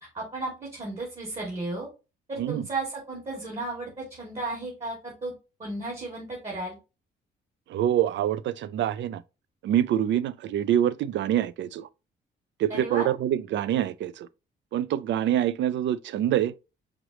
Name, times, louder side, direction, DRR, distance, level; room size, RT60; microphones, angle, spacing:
voice 1, 0.1-1.9 2.3-5.3 5.6-6.8 12.7-13.1, right 2 dB, 30° right, 2.5 m, -34 dB
voice 2, 7.7-9.2 9.6-11.9 12.6-14.3 14.7-16.5, right 11 dB, 65° right, 0.4 m, -25 dB
5.1 x 3.1 x 3.0 m
cardioid pair, 90°, 20 cm